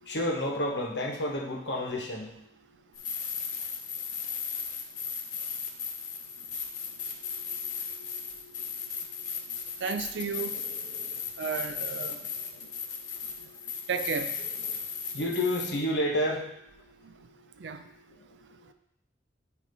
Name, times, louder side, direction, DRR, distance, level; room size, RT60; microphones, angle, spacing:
voice 1, 0.0-2.3 7.2-9.8 10.5-11.4 12.0-12.7 13.0-13.8 14.7-16.5 17.8-18.3, left 1 dB, 75° left, -1 dB, 1.3 m, -34 dB
sound 1, 2.9-15.7, left 6 dB, 45° left, 0.9 m, -36 dB
voice 2, 9.8-10.5 11.4-12.3 13.9-14.5 17.0-17.1 17.6-17.8, right 6 dB, 90° right, 9 dB, 0.4 m, -33 dB
8.5 x 2.8 x 5.4 m, 0.78 s
head